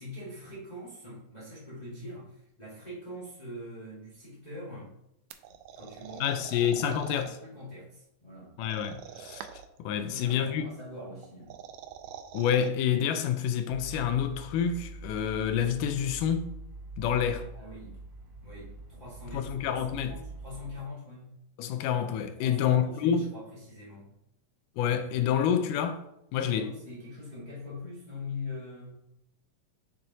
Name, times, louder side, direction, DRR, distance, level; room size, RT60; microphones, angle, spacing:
voice 1, 0.0-4.9 5.8-8.6 10.1-11.6 17.4-18.0 18.4-21.3 22.3-24.1 26.3-29.0, left 2 dB, 25° left, 0.9 m, -43 dB
sound 1, 5.3-7.3 8.6-9.8 11.2-12.7, right 9 dB, 80° right, 2.1 m, -45 dB
voice 2, 6.2-7.3 8.6-9.5 9.8-10.6 12.3-16.5 17.0-17.5 19.3-20.1 21.6-23.3 24.8-26.0 26.3-26.7, left 8 dB, 80° left, 2.1 m, -28 dB
sound 2, 13.7-20.8, right 2 dB, 65° right, 1.4 m, -44 dB
6.7 x 6.3 x 2.8 m
omnidirectional pair, 3.9 m